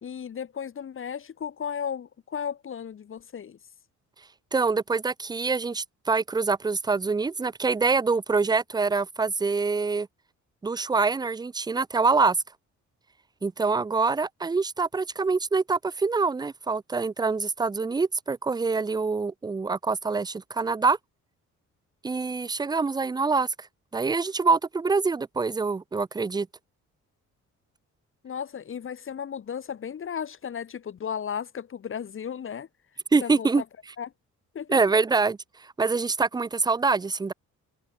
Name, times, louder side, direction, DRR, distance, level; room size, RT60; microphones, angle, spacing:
voice 1, 0.0-3.6 28.2-32.7 33.2-33.6 34.0-34.1 34.5-34.8, left 8 dB, 45° left, 1.1 m, -35 dB
voice 2, 4.5-10.1 10.6-12.4 13.4-21.0 22.0-23.7 23.9-26.5 33.1-33.6 34.7-37.3, right 4 dB, 15° right, 0.5 m, -25 dB
cardioid pair, 90°, 30 cm